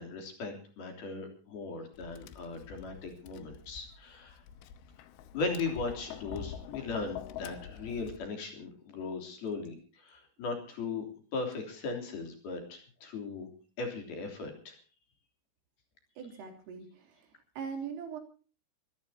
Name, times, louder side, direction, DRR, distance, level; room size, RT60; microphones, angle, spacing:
voice 1, 0.0-4.4 5.3-11.0 11.3-13.5 13.8-14.8, left 3 dB, 50° left, 3 dB, 4.8 m, -38 dB
Tap, 1.9-8.2, left 9 dB, 80° left, 3.4 m, -46 dB
voice 2, 16.2-17.3 17.6-18.2, right 6 dB, 75° right, 4 dB, 5.9 m, -41 dB
26.0 x 14.5 x 2.8 m, 0.38 s
omnidirectional pair, 5.9 m